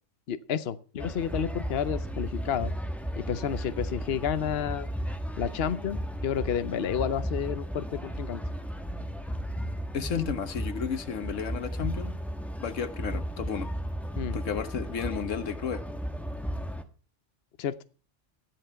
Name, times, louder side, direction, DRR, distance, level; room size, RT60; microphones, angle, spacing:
voice 1, 0.3-2.7 3.2-4.9 5.4-8.4 14.2-14.4 17.6-17.7, left 8 dB, 55° left, 13 dB, 1.0 m, -30 dB
sound 1, 1.0-16.8, equal, ahead, 1.2 m, -35 dB
voice 2, 9.9-12.2 12.6-13.7 14.3-15.8, left 7 dB, 85° left, 12 dB, 1.5 m, -32 dB
13.5 x 11.0 x 5.7 m, 0.38 s
omnidirectional pair, 1.3 m